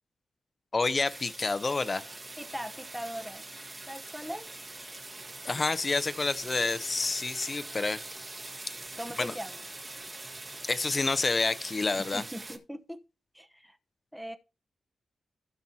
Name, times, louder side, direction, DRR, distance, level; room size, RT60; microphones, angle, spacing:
voice 1, 0.7-2.0 5.4-8.0 9.2-9.3 10.7-12.2, left 3 dB, 30° left, 0.7 m, -28 dB
sound 1, 0.8-12.6, right 2 dB, 30° right, 1.9 m, -43 dB
voice 2, 2.4-3.4 3.9-4.5 9.0-9.6 12.0-13.0 13.3-13.8 14.1-14.4, equal, ahead, 0.9 m, -40 dB
16.0 x 5.9 x 2.8 m
cardioid pair, 100°, 0 cm